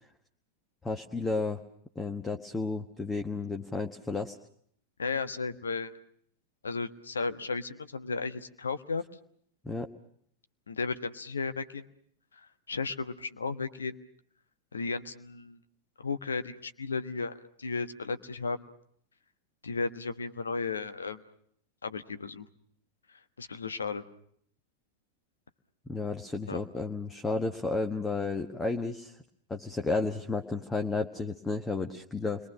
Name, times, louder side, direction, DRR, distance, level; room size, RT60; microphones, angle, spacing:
voice 1, 0.8-1.6 1.9-4.4 9.6-9.9 25.9-29.2 29.5-32.5, left 3 dB, 10° left, 6 dB, 1.3 m, -32 dB
voice 2, 5.0-5.9 6.6-9.0 10.7-11.8 12.7-14.0 14.7-15.6 16.0-18.6 19.6-21.2 21.8-22.5 23.4-24.0 26.5-26.6, left 4 dB, 70° left, 10 dB, 1.3 m, -34 dB
29.0 x 22.5 x 6.2 m, 0.65 s
figure-of-eight pair, 90°, 0 cm